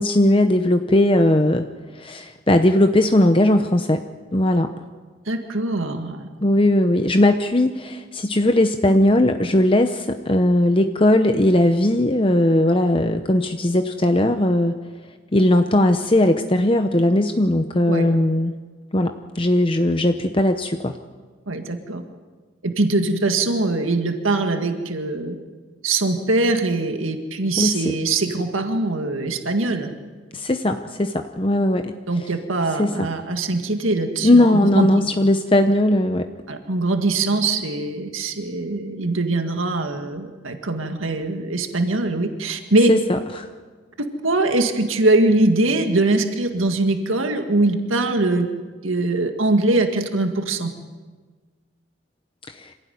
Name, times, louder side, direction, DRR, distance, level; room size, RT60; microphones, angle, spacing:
voice 1, 0.0-1.7 1.9-4.0 4.3-4.7 6.4-14.8 15.3-18.5 18.9-21.0 27.6-27.9 30.3-31.9 32.8-33.1 34.2-36.3 42.9-43.5 52.5-52.7, left 1 dB, 25° left, 7 dB, 0.8 m, -18 dB
voice 2, 5.3-6.3 17.9-18.1 21.5-22.0 22.6-25.4 25.8-29.9 32.1-35.0 36.5-42.9 44.0-48.5 48.8-50.7, right 2 dB, 85° right, 5 dB, 1.9 m, -22 dB
26.0 x 16.5 x 9.4 m, 1.4 s
head